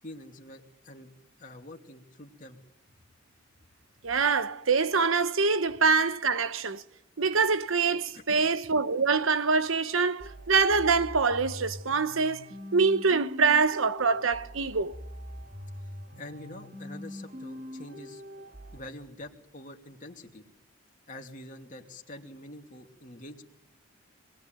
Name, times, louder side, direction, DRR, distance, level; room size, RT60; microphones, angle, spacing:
voice 1, 0.0-1.1 1.4-2.6 8.1-8.5 15.4-15.5 15.8-20.4 21.1-23.4, left 1 dB, 40° left, 2.7 m, -46 dB
voice 2, 4.0-6.8 7.2-15.0, right 4 dB, 80° right, 1.1 m, -25 dB
sound 1, 10.2-18.8, equal, 35° right, 2.3 m, -43 dB
26.5 x 20.5 x 9.3 m
head